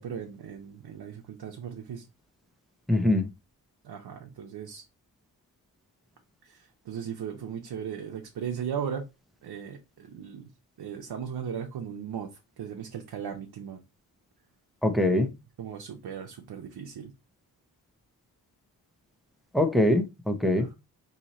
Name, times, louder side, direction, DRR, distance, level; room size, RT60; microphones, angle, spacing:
voice 1, 0.0-2.0 3.8-4.8 6.4-9.1 9.4-10.5 10.8-12.3 12.6-13.8 15.6-17.1 20.6-20.7, right 8 dB, 80° right, 0.8 m, -37 dB
voice 2, 2.9-3.3 14.8-15.3 19.5-20.7, left 1 dB, ahead, 0.8 m, -23 dB
4.5 x 2.8 x 4.1 m
cardioid pair, 75°, 38 cm